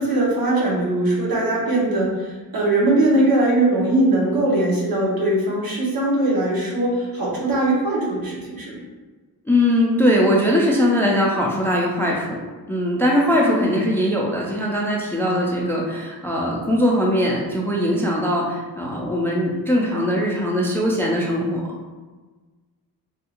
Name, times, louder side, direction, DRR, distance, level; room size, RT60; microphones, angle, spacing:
voice 1, 0.0-8.8, right 2 dB, 65° right, -4 dB, 1.0 m, -20 dB
voice 2, 9.5-12.4 12.7-21.6, equal, 5° left, -3 dB, 0.3 m, -20 dB
3.5 x 2.3 x 2.8 m, 1.3 s
wide cardioid pair, 115°, 38 cm